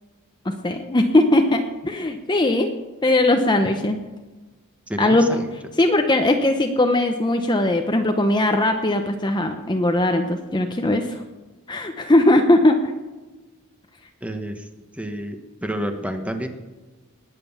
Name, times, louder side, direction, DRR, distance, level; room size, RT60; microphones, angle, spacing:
voice 1, 0.4-2.7 3.0-4.0 5.0-5.2 5.8-11.2 11.7-12.8, left 1 dB, 20° left, 5 dB, 0.8 m, -19 dB
voice 2, 4.9-5.5 14.2-14.7 14.9-16.5, equal, 5° right, 6 dB, 1.3 m, -29 dB
20.0 x 7.8 x 7.1 m, 1.2 s
head